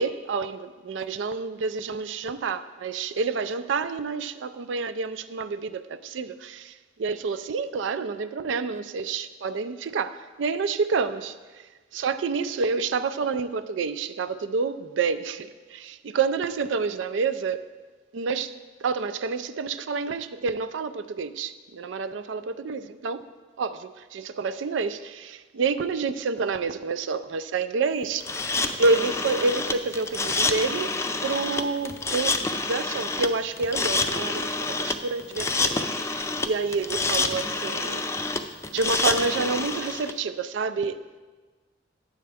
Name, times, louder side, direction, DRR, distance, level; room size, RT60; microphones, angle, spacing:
voice 1, 0.0-11.3 11.9-17.6 18.1-18.5 18.8-23.2 23.6-28.3 28.8-38.1 38.6-41.2, right 4 dB, 90° right, 12 dB, 0.4 m, -28 dB
sound 1, 28.2-40.1, left 3 dB, 15° left, 0.4 m, -28 dB
9.6 x 7.5 x 3.5 m, 1.3 s
head